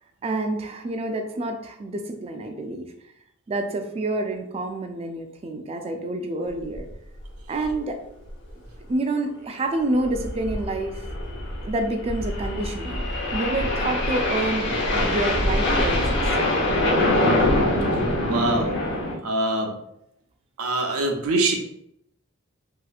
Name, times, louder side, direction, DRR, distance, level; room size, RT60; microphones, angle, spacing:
voice 1, 0.2-2.9 3.5-6.9 7.5-8.0 8.9-11.0 11.6-13.0 13.3-16.2, right 2 dB, 30° right, 5 dB, 0.3 m, -28 dB
sound 1, 6.7-6.9 7.2-7.3 7.6-7.7 8.2-8.5 9.8-19.1, left 1 dB, 55° left, 0.7 m, -24 dB
voice 2, 18.2-18.8 19.2-19.7 20.6-21.6, right 2 dB, 80° right, 2 dB, 0.6 m, -23 dB
3.1 x 2.8 x 2.4 m, 0.77 s
head